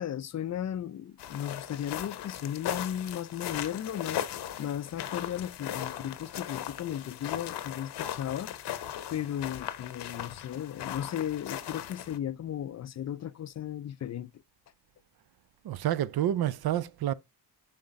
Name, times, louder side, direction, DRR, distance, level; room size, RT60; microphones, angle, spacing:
voice 1, 0.0-8.8 9.1-14.4, left 10 dB, 45° left, 0.4 m, -35 dB
sound 1, 1.2-12.2, left 11 dB, 75° left, 0.9 m, -38 dB
voice 2, 15.6-17.1, right 11 dB, 65° right, 0.5 m, -28 dB
5.6 x 3.5 x 5.2 m
cardioid pair, 80°, 41 cm